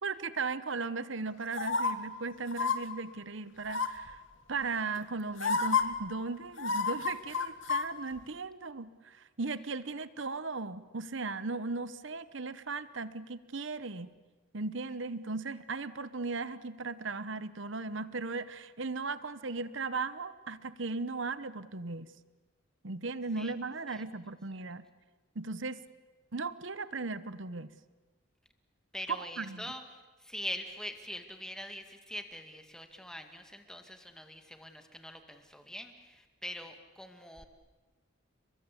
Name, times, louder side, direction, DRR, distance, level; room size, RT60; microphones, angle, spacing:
voice 1, 0.0-4.2 4.5-14.1 14.5-22.1 22.8-24.8 25.3-25.8 26.3-27.7 29.1-29.6, right 3 dB, 65° right, 14 dB, 1.0 m, -37 dB
sound 1, 1.5-1.9 2.5-2.8 3.7-4.1 5.0-5.1 5.4-5.8 6.6-7.8 8.2-8.3, left 5 dB, 65° left, 1.9 m, -29 dB
voice 2, 28.9-29.8 30.2-37.5, left 1 dB, 5° left, 6 dB, 2.0 m, -43 dB
30.0 x 22.0 x 8.4 m, 1.3 s
head